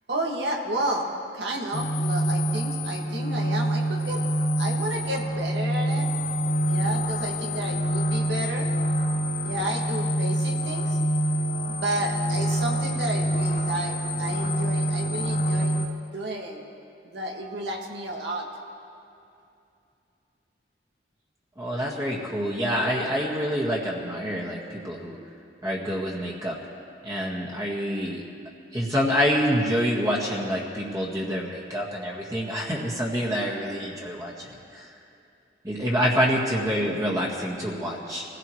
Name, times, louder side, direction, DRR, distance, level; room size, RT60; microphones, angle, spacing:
voice 1, 0.1-4.3 4.6-6.1 6.6-8.7 9.4-11.0 11.7-15.9 16.1-16.6 17.0-18.5, right 1 dB, 80° right, 0 dB, 2.1 m, -32 dB
sound 1, 1.7-15.9, right 1 dB, 50° left, 1.0 m, -26 dB
voice 2, 21.6-25.2 25.6-26.6 27.0-28.2 28.7-34.9 35.6-38.2, equal, 20° right, -4 dB, 1.8 m, -27 dB
25.0 x 16.5 x 3.2 m, 2.6 s
head